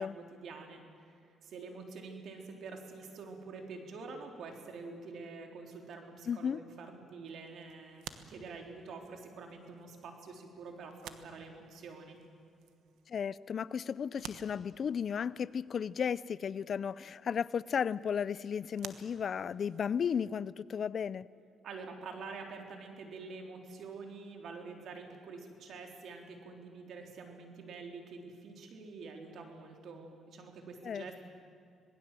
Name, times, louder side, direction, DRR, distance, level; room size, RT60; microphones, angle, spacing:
voice 1, 0.0-12.2 21.6-31.2, right 4 dB, 70° right, 3 dB, 3.8 m, -47 dB
voice 2, 6.3-6.6 13.1-21.3 30.8-31.1, left 7 dB, 55° left, 19 dB, 0.5 m, -34 dB
sound 1, 7.2-20.1, right 9 dB, 85° right, 1.2 m, -55 dB
26.5 x 19.5 x 7.7 m, 2.4 s
cardioid pair, 90°, 0 cm